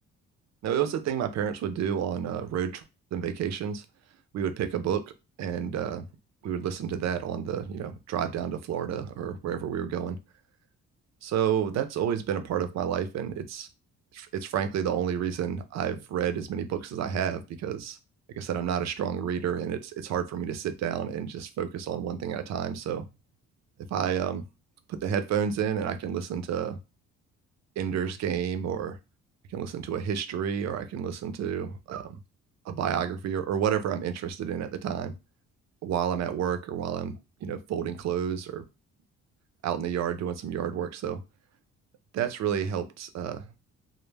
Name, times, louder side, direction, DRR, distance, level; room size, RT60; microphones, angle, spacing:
voice 1, 0.6-2.8 3.1-3.8 4.3-5.1 5.4-6.1 6.4-10.2 11.2-13.7 14.1-18.0 18.3-23.0 23.9-24.4 24.9-26.8 27.8-29.0 29.5-32.2 32.7-35.1 35.8-38.7 39.6-41.2 42.1-43.5, right 8 dB, 60° right, 9 dB, 0.5 m, -30 dB
2.1 x 2.0 x 3.2 m, 0.26 s
cardioid pair, 90°, 30 cm